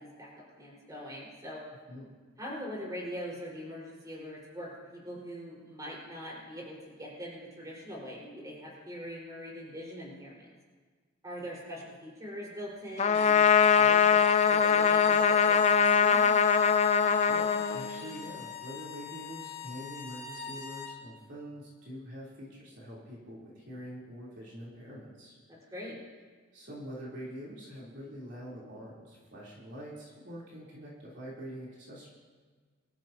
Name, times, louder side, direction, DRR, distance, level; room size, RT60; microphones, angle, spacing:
voice 1, 0.0-1.6 2.4-10.5 11.2-16.2 25.5-26.0, equal, 15° right, -5 dB, 4.7 m, -42 dB
Trumpet, 13.0-18.3, left 6 dB, 35° left, 0.4 m, -23 dB
sound 1, 13.1-21.0, left 4 dB, 60° left, 2.3 m, -43 dB
voice 2, 16.8-25.3 26.5-32.1, equal, 55° right, -6 dB, 3.5 m, -45 dB
25.0 x 13.5 x 2.9 m, 1.5 s
head